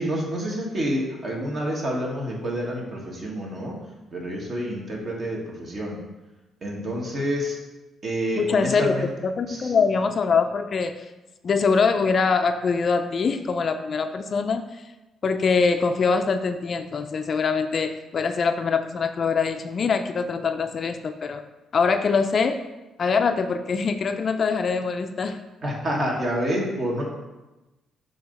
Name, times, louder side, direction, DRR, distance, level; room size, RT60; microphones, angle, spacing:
voice 1, 0.0-3.8 4.1-5.9 6.6-7.6 8.0-9.1 9.5-9.7 25.6-27.1, equal, 45° right, -2 dB, 1.7 m, -28 dB
voice 2, 8.4-8.9 9.2-10.9 11.4-14.6 15.2-21.4 21.7-22.6 23.0-25.4, left 5 dB, 50° left, 8 dB, 0.4 m, -23 dB
7.1 x 2.9 x 5.2 m, 1.1 s
cardioid pair, 90°, 0 cm